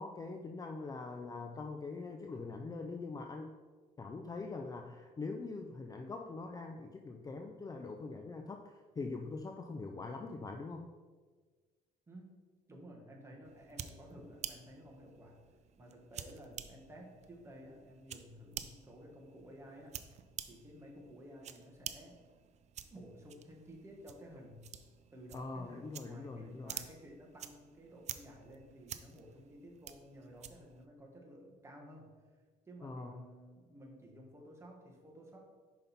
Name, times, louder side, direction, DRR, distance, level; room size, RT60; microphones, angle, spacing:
voice 1, 0.0-3.5 4.0-10.9 25.3-26.7 32.8-33.1, left 3 dB, 20° left, 4 dB, 0.4 m, -43 dB
voice 2, 12.7-15.4 15.8-19.9 20.5-22.2 22.9-24.6 25.1-32.1 32.6-35.4, equal, 15° right, -1 dB, 1.4 m, -54 dB
sound 1, 13.4-30.9, right 9 dB, 40° right, 0.4 m, -50 dB
5.6 x 5.2 x 4.2 m, 1.5 s
cardioid pair, 110°, 17 cm